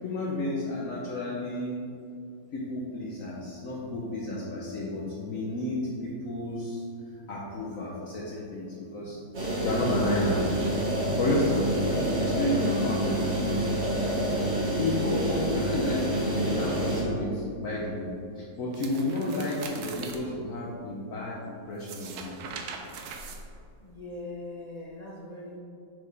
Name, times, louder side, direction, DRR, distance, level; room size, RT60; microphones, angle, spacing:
voice 1, 0.0-1.7 2.5-6.8 7.3-10.5 11.1-13.6 14.7-22.3, left 2 dB, 60° left, -4 dB, 1.1 m, -31 dB
sound 1, 9.3-17.0, right 1 dB, 45° right, 1.6 m, -28 dB
sound 2, 18.7-20.2 21.7-24.0, right 5 dB, 75° right, 1.2 m, -41 dB
voice 2, 23.8-25.6, left 2 dB, 35° left, -4 dB, 0.7 m, -41 dB
5.9 x 4.9 x 4.7 m, 2.5 s
omnidirectional pair, 1.8 m